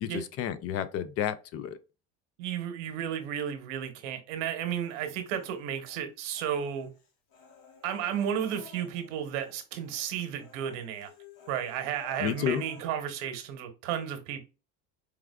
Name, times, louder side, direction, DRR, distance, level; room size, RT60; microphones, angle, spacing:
voice 1, 0.0-1.8 12.2-12.6, left 9 dB, 45° left, 0.4 m, -31 dB
voice 2, 2.4-6.9 7.8-11.1 11.5-14.4, right 9 dB, 80° right, 1.0 m, -33 dB
Human voice, 4.8-6.0 6.3-9.6 9.8-10.1 10.4-12.8, left 7 dB, 65° left, 1.5 m, -53 dB
4.7 x 2.4 x 2.2 m
supercardioid pair, 120°, 35 cm